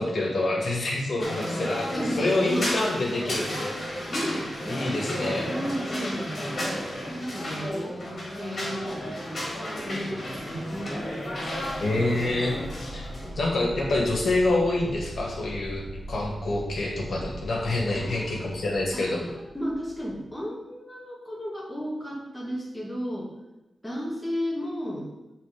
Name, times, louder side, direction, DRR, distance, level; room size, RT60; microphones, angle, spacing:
voice 1, 0.0-3.7 4.7-5.5 11.8-13.1 13.3-19.3, left 2 dB, 60° left, -1 dB, 1.8 m, -27 dB
sound 1, 1.2-13.3, equal, 40° left, 2.2 m, -33 dB
voice 2, 1.5-2.7 3.4-3.6 4.1-6.6 7.1-8.8 9.8-11.0 17.9-18.4 18.9-23.3 23.8-25.1, equal, 5° left, -4 dB, 1.6 m, -34 dB
sound 2, 11.0-20.3, equal, 20° right, 2.6 m, -41 dB
7.9 x 4.1 x 5.0 m, 1.0 s
wide cardioid pair, 175°, 0 cm